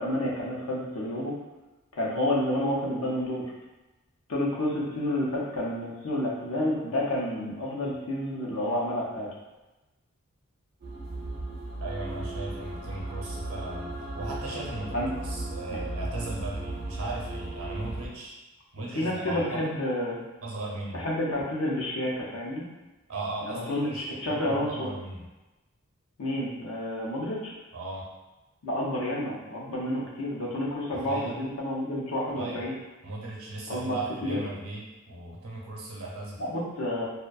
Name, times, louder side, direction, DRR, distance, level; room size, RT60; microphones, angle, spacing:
voice 1, 0.0-1.3 2.0-3.4 4.3-9.3 14.9-15.1 18.9-20.2 20.9-22.7 23.5-24.9 26.2-27.5 28.6-32.7 33.7-34.4 36.4-37.1, left 1 dB, 75° left, -4 dB, 0.6 m, -30 dB
sound 1, 10.8-18.1, right 1 dB, 40° right, 0.4 m, -36 dB
voice 2, 11.8-18.3 18.7-19.8 20.4-21.1 23.1-25.3 27.7-28.1 30.9-31.4 32.4-32.6 33.0-36.4, right 2 dB, 75° right, -3 dB, 0.7 m, -37 dB
2.5 x 2.2 x 2.2 m, 1.1 s
head